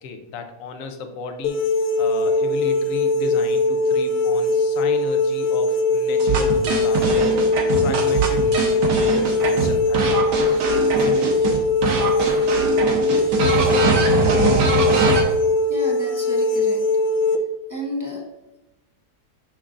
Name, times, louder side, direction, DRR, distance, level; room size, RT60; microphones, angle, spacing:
voice 1, 0.0-7.3 7.7-10.6 10.9-11.3, left 4 dB, 60° left, 6 dB, 1.0 m, -34 dB
sound 1, 1.4-17.4, left 2 dB, 85° left, 1.3 m, -20 dB
sound 2, 6.2-11.6 11.8-15.2, right 3 dB, 90° right, 1.6 m, -22 dB
voice 2, 15.7-16.8 17.3-17.4 17.7-18.2, equal, 20° left, -1 dB, 0.5 m, -31 dB
6.8 x 6.1 x 2.5 m, 1.0 s
omnidirectional pair, 1.8 m